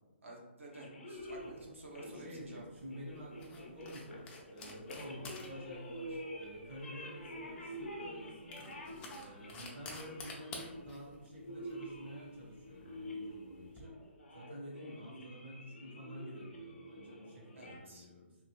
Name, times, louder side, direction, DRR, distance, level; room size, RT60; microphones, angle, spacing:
voice 1, 0.2-2.6 17.5-18.1, right 1 dB, 85° right, -2 dB, 1.0 m, -51 dB
sound 1, 0.7-17.8, equal, 75° left, 0.6 m, -48 dB
sound 2, 1.2-13.8, left 3 dB, 15° left, 0.4 m, -52 dB
voice 2, 1.9-8.7 9.2-14.0 14.3-18.4, equal, 65° right, -4 dB, 1.3 m, -50 dB
2.9 x 2.5 x 3.0 m, 1.2 s
hypercardioid pair, 150°, 7 cm